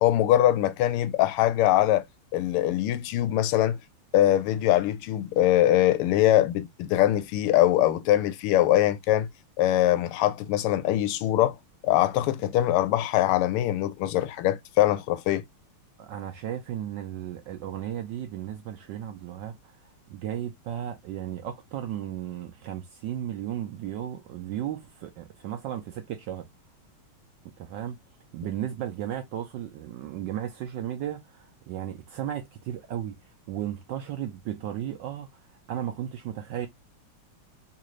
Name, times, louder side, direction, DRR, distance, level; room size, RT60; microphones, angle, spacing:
voice 1, 0.0-2.0 2.3-3.8 4.1-9.3 9.6-11.6 11.8-15.4, left 13 dB, 85° left, 1.5 m, -22 dB
voice 2, 16.0-26.5 27.6-28.0 28.3-33.1 33.5-35.3 35.7-36.7, right 11 dB, 75° right, 1.0 m, -35 dB
3.7 x 2.5 x 3.0 m
omnidirectional pair, 2.4 m